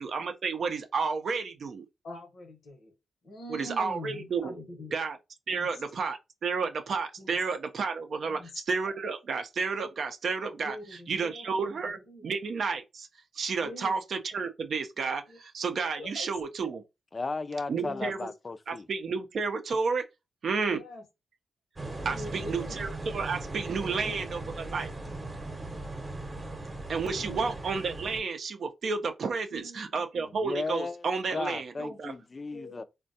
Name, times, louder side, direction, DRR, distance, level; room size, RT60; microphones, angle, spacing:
voice 1, 0.0-1.9 3.5-4.6 4.9-5.2 5.5-10.8 11.1-13.1 13.3-16.8 17.7-18.3 18.7-20.0 20.4-20.8 22.0-24.9 26.9-32.1, right 5 dB, 65° right, 0.4 m, -31 dB
voice 2, 2.0-2.9 3.2-4.9 5.5-5.8 7.2-7.4 8.2-8.6 10.6-12.2 13.6-13.9 15.3-15.4 16.0-16.3 17.8-18.1 20.6-21.0 22.1-22.8 23.8-24.3 27.2-27.6 29.5-30.0 31.8-32.0 32.5-32.8, left 1 dB, 70° left, 0.8 m, -44 dB
voice 3, 17.1-18.9 30.3-32.8, left 3 dB, 40° left, 0.3 m, -35 dB
sound 1, 21.8-28.2, right 2 dB, 35° right, 0.8 m, -38 dB
3.3 x 2.2 x 2.6 m
supercardioid pair, 45°, 0 cm